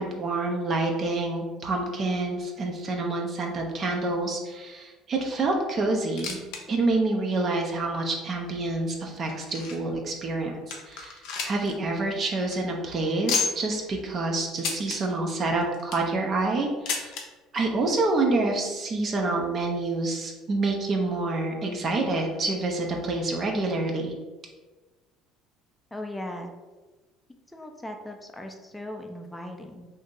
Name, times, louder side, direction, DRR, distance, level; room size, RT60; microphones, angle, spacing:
voice 1, 0.0-6.4 6.7-11.2 11.4-17.2 17.5-24.1, right 2 dB, 40° right, 1 dB, 0.5 m, -27 dB
sound 1, 5.9-6.6 6.9-7.0 7.7-7.8 8.5-10.0 10.4-10.5 10.7-11.7 12.0-12.1 12.4-12.6 13.3-13.8 14.6-15.0 15.6-16.1 16.9-17.2 18.2-18.3 18.5-18.6 19.4-19.5, left 5 dB, 65° left, 0.6 m, -31 dB
voice 2, 25.9-26.5 27.5-29.9, left 1 dB, 10° left, 3 dB, 0.4 m, -38 dB
2.7 x 2.6 x 3.7 m, 1.2 s
hypercardioid pair, 65°, 0 cm